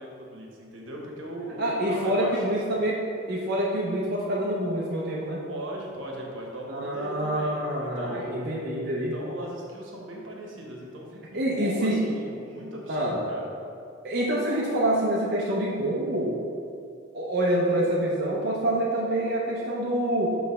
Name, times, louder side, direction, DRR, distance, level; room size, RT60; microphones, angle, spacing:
voice 1, 0.0-2.8 5.5-8.5 9.0-13.5, right 1 dB, 85° right, -1 dB, 1.1 m, -38 dB
voice 2, 1.6-5.4 6.7-9.1 11.3-12.0 12.9-13.2 14.0-16.3 17.1-20.4, right 1 dB, 55° right, -4 dB, 0.7 m, -26 dB
6.3 x 3.3 x 5.2 m, 2.4 s
head